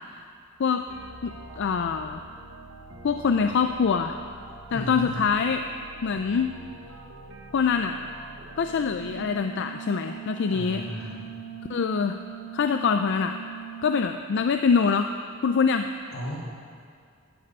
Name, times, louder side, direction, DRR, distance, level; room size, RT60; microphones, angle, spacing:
sound 1, 0.9-10.7, right 2 dB, 75° right, 1.1 m, -45 dB
voice 1, 1.2-2.2 3.0-4.2 4.7-5.6 6.0-6.6 7.5-8.0 8.6-10.8 11.7-12.2 12.5-13.4 13.8-15.1 15.4-15.9, left 5 dB, 60° left, 7 dB, 0.4 m, -24 dB
voice 2, 4.7-5.1 10.5-11.3 16.1-16.4, equal, 85° left, -7 dB, 4.0 m, -35 dB
sound 2, 8.8-14.0, right 10 dB, 60° right, 2.9 m, -40 dB
12.0 x 6.7 x 8.5 m, 2.2 s
head